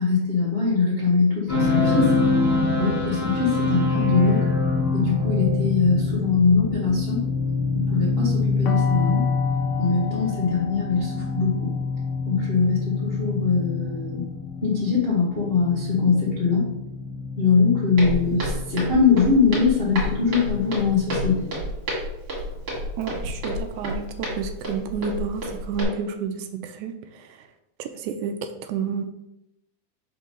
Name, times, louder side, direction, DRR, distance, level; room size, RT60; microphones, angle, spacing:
voice 1, 0.0-2.1 2.8-4.5 4.9-7.2 7.7-9.3 9.8-11.7 12.3-14.2 14.6-16.7 17.4-21.5, left 5 dB, 50° left, -6 dB, 0.7 m, -22 dB
sound 1, 1.5-21.4, left 3 dB, 15° right, 2.1 m, -26 dB
sound 2, 8.7-14.5, left 8 dB, 85° left, 2.4 m, -37 dB
Walk footsteps, 18.0-25.8, equal, 40° right, 2.7 m, -30 dB
voice 2, 23.0-27.5 27.8-29.0, right 6 dB, 80° right, 7 dB, 2.0 m, -30 dB
5.6 x 3.8 x 5.2 m, 0.85 s
omnidirectional pair, 3.6 m